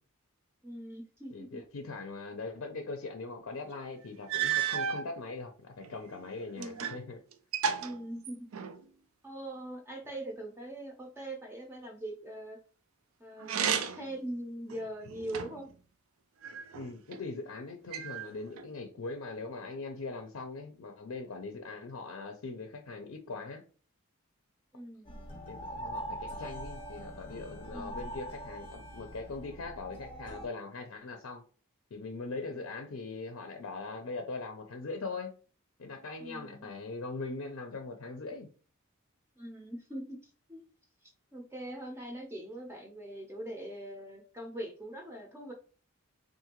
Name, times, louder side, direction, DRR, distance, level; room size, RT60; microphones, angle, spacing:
voice 1, 0.6-1.6 6.5-6.9 7.8-8.5 9.2-12.6 13.2-15.7 24.7-25.2 27.7-28.0 36.2-36.7 39.4-40.2 40.5-40.7 41.0-45.5, right 1 dB, 10° right, 1 dB, 0.6 m, -42 dB
voice 2, 1.3-7.2 16.7-23.6 25.5-31.4 31.9-35.3 35.8-38.5, left 3 dB, 70° left, 4 dB, 0.5 m, -41 dB
sound 1, 3.7-3.8 4.3-5.1 5.8-7.0 7.3-8.8 13.4-14.2 14.7-15.7 16.4-17.2 17.9-18.7, right 8 dB, 75° right, 0.4 m, -33 dB
sound 2, 25.1-30.5, right 1 dB, 25° left, 0.7 m, -43 dB
3.7 x 2.5 x 2.9 m, 0.38 s
head